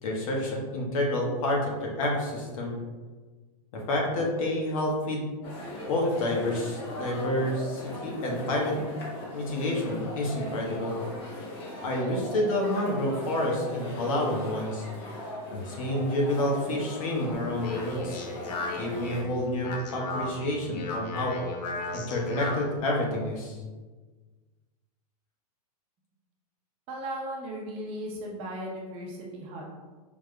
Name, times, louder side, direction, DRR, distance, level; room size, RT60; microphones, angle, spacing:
voice 1, 0.0-2.7 3.7-5.3 5.9-8.8 9.3-11.0 11.8-14.8 15.5-18.2 18.8-21.4 21.9-23.6, left 1 dB, 55° left, -1 dB, 1.1 m, -29 dB
sound 1, 5.4-19.2, left 1 dB, 25° left, 0.9 m, -39 dB
Speech, 17.3-22.8, left 2 dB, 85° left, 0.8 m, -36 dB
voice 2, 26.9-29.6, right 1 dB, 30° right, -2 dB, 0.7 m, -36 dB
5.1 x 3.5 x 2.2 m, 1.3 s
supercardioid pair, 155°, 21 cm